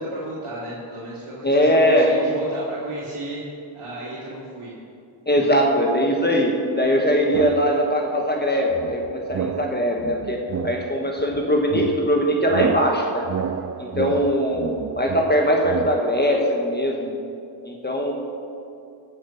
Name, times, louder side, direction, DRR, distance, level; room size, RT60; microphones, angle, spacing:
voice 1, 0.0-1.8 2.0-3.4 3.7-4.7 14.0-14.2, right 1 dB, 85° right, -10 dB, 3.1 m, -34 dB
voice 2, 1.4-2.1 5.3-10.4 10.6-13.3 13.8-17.1 17.6-18.1, equal, 20° left, 0 dB, 1.4 m, -21 dB
sound 1, 7.3-8.2 8.7-16.0, right 8 dB, 35° right, 0.4 m, -30 dB
15.5 x 7.5 x 5.9 m, 2.6 s
wide cardioid pair, 90°, 49 cm